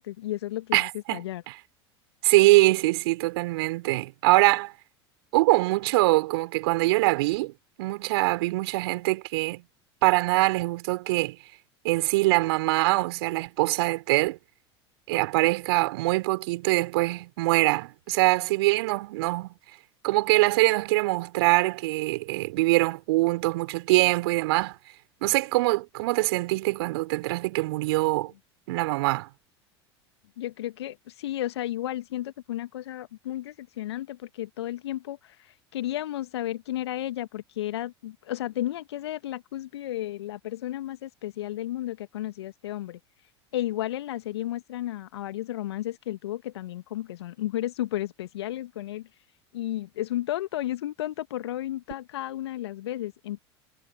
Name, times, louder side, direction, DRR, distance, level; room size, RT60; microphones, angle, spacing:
voice 1, 0.0-1.4 30.4-35.2 35.7-43.0 43.5-49.1 49.5-53.4, left 14 dB, 70° left, 1.9 m, -33 dB
voice 2, 0.7-1.6 2.2-4.7 5.3-7.5 7.8-9.6 10.0-11.4 11.8-14.4 15.1-19.5 20.0-24.8 25.2-28.3 28.7-29.3, right 21 dB, 65° right, 4.0 m, -23 dB
figure-of-eight pair, 80°, 14 cm